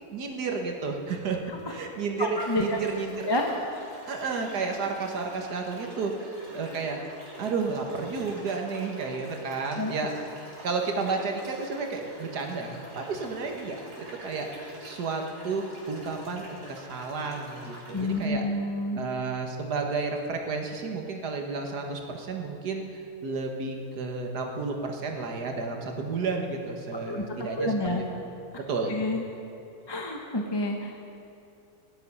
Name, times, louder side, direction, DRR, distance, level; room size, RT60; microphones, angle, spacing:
voice 1, 0.1-1.4 1.7-3.2 4.1-7.0 7.4-10.1 10.6-14.5 14.8-18.4 18.9-27.7 28.7-28.9, right 4 dB, 90° right, 3 dB, 2.0 m, -32 dB
sound 1, 1.6-1.7 2.4-18.3, right 1 dB, 75° right, 4.3 m, -46 dB
voice 2, 2.2-2.8 3.2-3.4 3.7-3.9 9.8-9.9 17.9-19.0 27.1-27.2 27.5-28.0 28.5-28.6 28.9-29.2 29.9-31.0, left 1 dB, 20° left, 1 dB, 1.0 m, -29 dB
17.5 x 11.0 x 5.5 m, 2.7 s
omnidirectional pair, 1.7 m